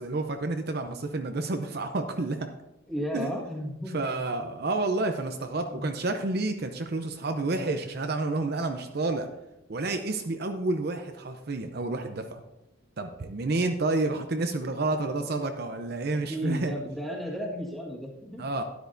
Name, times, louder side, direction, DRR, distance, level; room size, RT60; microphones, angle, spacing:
voice 1, 0.0-2.5 3.1-3.3 3.9-9.3 9.7-12.4 13.0-16.7 18.4-18.6, right 2 dB, 50° right, 6 dB, 0.6 m, -29 dB
voice 2, 2.9-4.0 5.7-5.9 15.0-15.2 16.1-18.4, equal, ahead, -2 dB, 1.6 m, -34 dB
12.5 x 10.5 x 2.6 m, 0.94 s
head